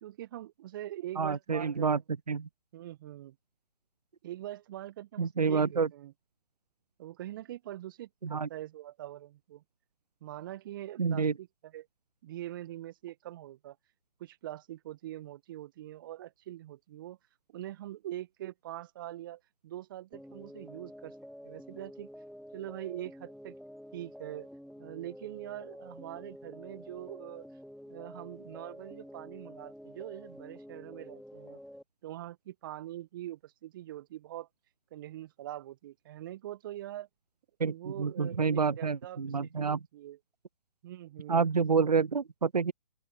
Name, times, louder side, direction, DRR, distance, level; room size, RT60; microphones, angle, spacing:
voice 1, 0.0-1.9 2.7-3.4 4.2-6.1 7.0-9.6 10.2-11.9 12.2-13.8 14.2-17.2 17.5-21.1 21.4-22.1 22.5-23.6 23.9-24.5 24.8-27.5 27.9-31.6 32.0-34.5 34.9-37.1 37.7-40.2 40.8-41.5, right 13 dB, 35° right, 1.1 m, -43 dB
voice 2, 1.2-2.0 2.3-2.5 5.2-5.9 8.2-8.5 11.0-11.3 37.6-39.8 41.3-42.7, right 5 dB, 85° right, 0.5 m, -28 dB
sound 1, 20.1-31.8, equal, ahead, 0.4 m, -49 dB
open air
figure-of-eight pair, 130°, 20 cm